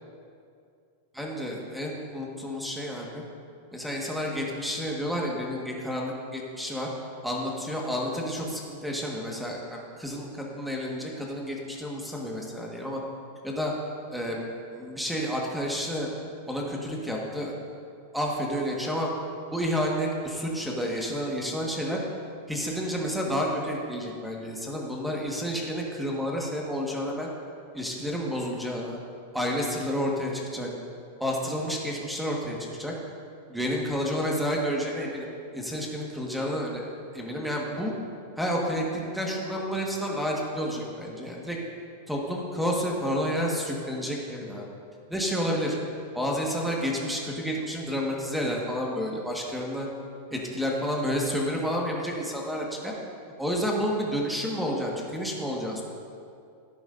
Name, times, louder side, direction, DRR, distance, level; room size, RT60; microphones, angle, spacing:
voice 1, 1.1-3.2 3.7-6.9 7.2-13.0 13.4-13.7 14.1-14.4 14.7-16.1 16.5-17.5 18.1-19.1 19.5-22.0 22.5-27.3 27.7-29.0 29.3-30.7 31.2-32.9 33.5-35.3 35.5-36.8 37.1-37.9 38.4-41.6 42.1-44.7 45.1-45.8 46.1-49.9 50.3-52.9 53.4-55.8, equal, ahead, -2 dB, 1.5 m, -30 dB
13.0 x 10.5 x 2.6 m, 2.4 s
supercardioid pair, 135°, 0 cm